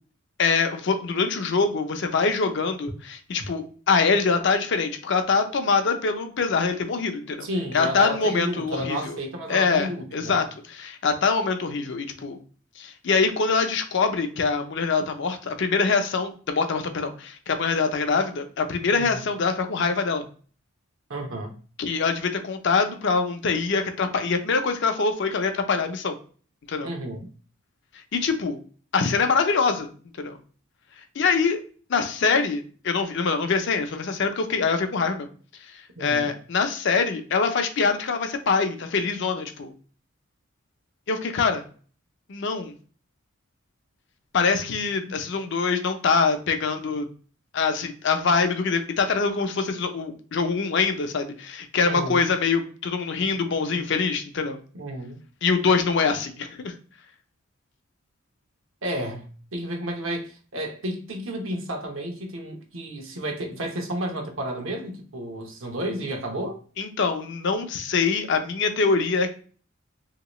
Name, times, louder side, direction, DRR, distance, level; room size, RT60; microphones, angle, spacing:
voice 1, 0.4-7.5 7.7-9.2 9.5-12.4 12.8-20.2 21.8-26.1 26.7-26.9 28.1-28.6 28.9-29.9 30.2-30.4 31.2-31.6 31.9-35.3 36.0-39.7 41.1-41.6 42.3-42.7 44.3-47.1 47.5-54.6 55.4-56.7 66.8-69.3, left 4 dB, 60° left, 0.5 m, -24 dB
voice 2, 7.4-10.4 18.9-19.2 21.1-21.5 26.8-27.3 36.0-36.3 45.1-45.2 51.8-52.2 54.7-55.2 58.8-66.6, right 1 dB, 70° right, 0.8 m, -32 dB
3.0 x 2.9 x 2.9 m
head